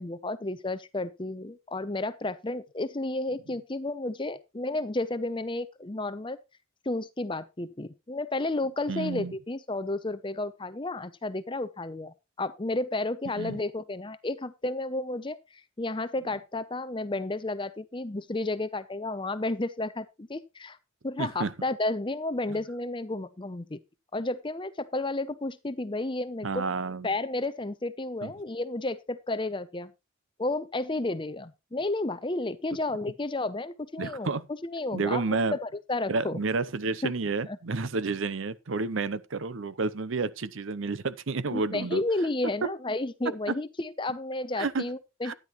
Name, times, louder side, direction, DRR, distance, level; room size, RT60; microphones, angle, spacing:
voice 1, 0.0-6.4 6.9-15.4 15.8-20.8 21.0-23.8 24.1-26.7 27.0-29.9 30.4-34.3 34.6-35.2 35.5-36.4 37.0-37.1 37.5-37.6 41.5-45.3, left 2 dB, 25° left, 0.7 m, -32 dB
voice 2, 8.9-9.3 13.4-13.6 21.2-21.5 26.4-27.1 28.2-28.3 34.0-34.5 34.9-35.6 36.1-42.0 43.5-43.6 44.6-44.8 45.2-45.3, right 4 dB, 70° right, 0.7 m, -30 dB
12.0 x 10.0 x 3.1 m
head